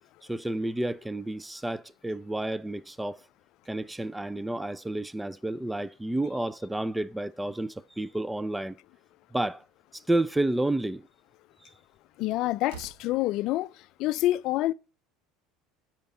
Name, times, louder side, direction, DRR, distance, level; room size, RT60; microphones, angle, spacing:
voice 1, 0.3-3.3 3.7-8.8 9.3-9.6 9.9-11.0 11.6-11.7, right 1 dB, 5° right, 0.3 m, -30 dB
Slam, 9.6-9.7 10.3-10.6 12.1-12.2 12.6-13.2, right 6 dB, 75° right, 1.2 m, -47 dB
voice 2, 12.2-13.7 14.0-14.7, left 16 dB, 60° left, 0.4 m, -27 dB
10.0 x 4.5 x 7.0 m
supercardioid pair, 125°, 0 cm